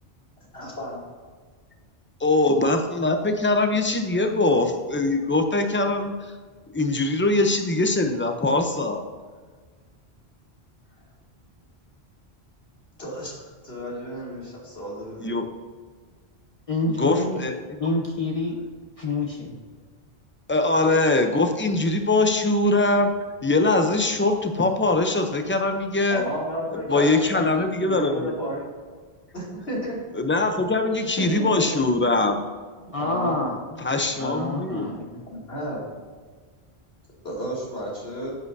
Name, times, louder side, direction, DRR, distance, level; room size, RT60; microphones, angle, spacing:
voice 1, 0.4-1.0 13.0-13.3 13.6-15.4 26.1-28.7 29.3-30.0 31.2-31.7 33.0-33.4 35.3-35.8 37.2-38.3, equal, 70° left, -5 dB, 3.0 m, -32 dB
voice 2, 2.2-6.3 6.7-9.0 15.2-15.5 16.9-17.6 20.5-23.1 23.4-26.3 26.7-28.3 30.1-32.4 33.8-34.9, left 2 dB, 15° left, 5 dB, 0.6 m, -22 dB
voice 3, 16.7-17.4 17.8-18.6 19.0-19.6 32.9-33.8 34.2-35.2, left 2 dB, 35° left, -1 dB, 1.0 m, -27 dB
10.5 x 8.8 x 2.7 m, 1.5 s
omnidirectional pair, 1.1 m